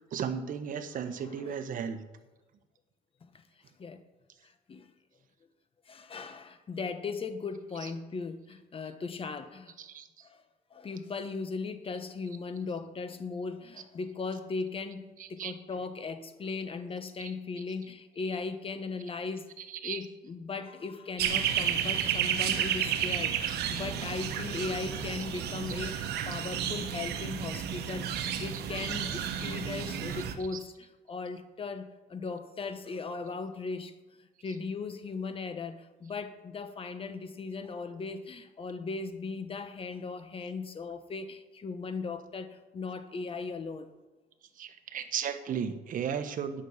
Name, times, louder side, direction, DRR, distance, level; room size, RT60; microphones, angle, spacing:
voice 1, 0.0-2.0 7.8-7.9 9.8-10.1 15.2-15.5 17.2-17.3 19.6-20.0 23.5-23.9 29.4-29.5 30.5-30.6 44.6-46.6, right 7 dB, 55° right, 8 dB, 1.3 m, -35 dB
voice 2, 4.4-4.9 5.9-9.7 10.2-10.4 10.7-33.9 34.2-43.9, left 4 dB, 35° left, 9 dB, 1.2 m, -38 dB
sound 1, 21.2-30.3, right 9 dB, 75° right, 1.2 m, -32 dB
10.5 x 6.5 x 8.1 m, 1.2 s
cardioid pair, 110°, 17 cm